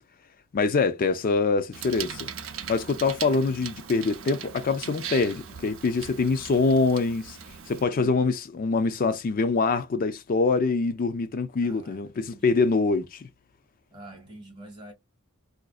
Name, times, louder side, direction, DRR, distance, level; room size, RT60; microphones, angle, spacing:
voice 1, 0.5-2.3 2.7-7.4 7.7-13.3, left 4 dB, 40° left, 0.4 m, -24 dB
Bicycle, 1.7-7.8, right 7 dB, 60° right, 0.6 m, -39 dB
voice 2, 7.8-8.3 11.6-12.7 13.9-14.9, right 1 dB, 20° right, 1.7 m, -47 dB
4.8 x 2.5 x 2.3 m
head